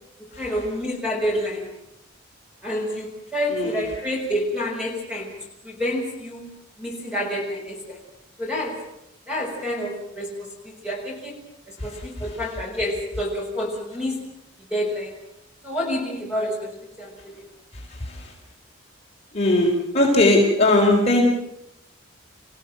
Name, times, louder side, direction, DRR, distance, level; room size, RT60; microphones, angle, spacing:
voice 1, 0.4-1.7 2.6-5.3 5.6-6.5 6.8-8.0 8.4-8.8 9.3-14.2 14.7-15.1 15.6-17.4, equal, 5° right, -1 dB, 6.6 m, -28 dB
voice 2, 17.7-18.3 19.3-21.2, left 2 dB, 30° left, -2 dB, 4.4 m, -20 dB
28.0 x 16.5 x 7.9 m, 0.79 s
head